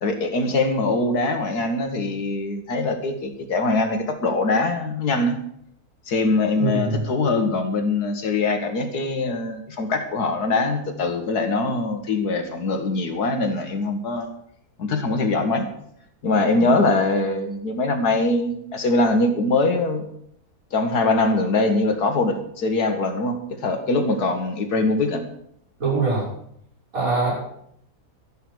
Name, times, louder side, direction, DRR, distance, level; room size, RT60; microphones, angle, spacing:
voice 1, 0.0-5.4 6.1-14.3 14.8-15.7 16.2-20.1 20.7-25.2, left 2 dB, 85° left, 6 dB, 2.2 m, -22 dB
voice 2, 6.5-7.0 16.6-16.8 25.8-26.3 26.9-27.3, right 4 dB, 65° right, -5 dB, 6.8 m, -23 dB
13.0 x 11.0 x 6.3 m, 0.71 s
omnidirectional pair, 1.6 m